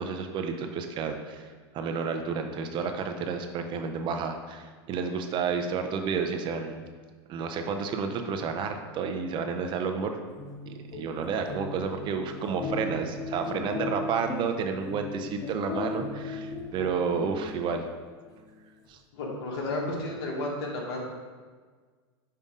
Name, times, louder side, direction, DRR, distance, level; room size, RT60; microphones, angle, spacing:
voice 1, 0.0-1.5 1.7-6.8 7.3-10.2 10.7-17.8 18.9-19.0, right 5 dB, 35° right, 6 dB, 0.6 m, -31 dB
sound 1, 10.2-17.9, left 3 dB, 25° left, 0.6 m, -37 dB
voice 2, 19.1-21.0, left 2 dB, 70° left, -1 dB, 1.6 m, -32 dB
5.5 x 5.1 x 3.6 m, 1.5 s
hypercardioid pair, 120°, 14 cm